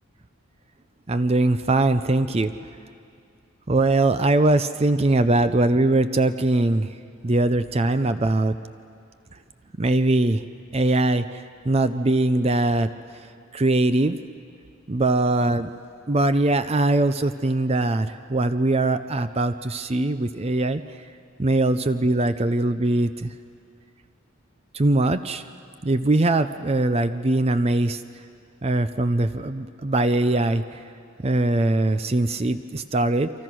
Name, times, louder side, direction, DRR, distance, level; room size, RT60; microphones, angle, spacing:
voice 1, 1.1-2.5 3.7-7.0 7.2-8.5 9.8-10.4 10.7-12.9 13.5-14.2 14.9-15.7 16.1-20.8 21.4-23.3 24.7-25.4 25.8-28.0 28.6-30.8 31.2-33.3, right 2 dB, 30° right, 11 dB, 0.5 m, -21 dB
29.0 x 24.5 x 6.2 m, 2.4 s
head